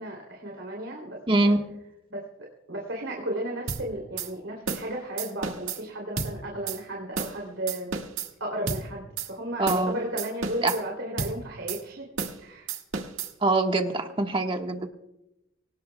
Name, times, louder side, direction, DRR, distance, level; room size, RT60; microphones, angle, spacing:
voice 1, 0.0-1.5 2.1-2.3 2.7-7.9 8.4-12.1 12.4-12.8, right 1 dB, 65° right, -1 dB, 3.0 m, -34 dB
voice 2, 1.3-1.6 9.6-9.9 10.6-10.7 13.4-14.9, right 2 dB, 25° right, 4 dB, 1.4 m, -23 dB
sound 1, 3.7-3.8 4.2-4.3 4.7-4.9 5.2-5.8 6.2-6.3 6.7-6.8 7.2-7.4 7.7-8.3 8.7-8.8 9.2-9.3 9.7-9.9 10.2-10.8 11.2-11.3 11.7-11.8 12.2-12.4 12.7-13.3, right 5 dB, 90° right, 1.7 m, -31 dB
24.5 x 18.5 x 2.3 m, 0.88 s
head